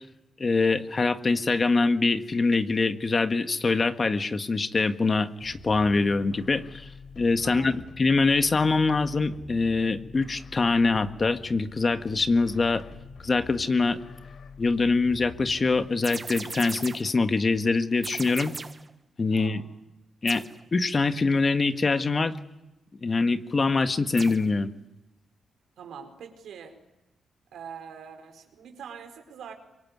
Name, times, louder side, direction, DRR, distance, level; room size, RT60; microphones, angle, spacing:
voice 1, 0.4-6.9 7.2-12.8 13.2-14.0 14.6-18.5 19.2-19.6 20.2-20.4 20.7-22.3 23.0-24.7, left 3 dB, 30° left, 9 dB, 1.6 m, -24 dB
sound 1, 5.4-15.9, left 4 dB, 65° left, 3.8 m, -45 dB
voice 2, 7.4-7.8 19.3-19.7 25.8-26.8 27.5-29.5, right 7 dB, 80° right, 6 dB, 4.6 m, -43 dB
sound 2, 16.0-17.2 18.0-18.9 20.3-20.6 24.2-24.5, right 4 dB, 30° right, 1.2 m, -38 dB
25.0 x 24.5 x 9.7 m, 0.92 s
cardioid pair, 110°, 0 cm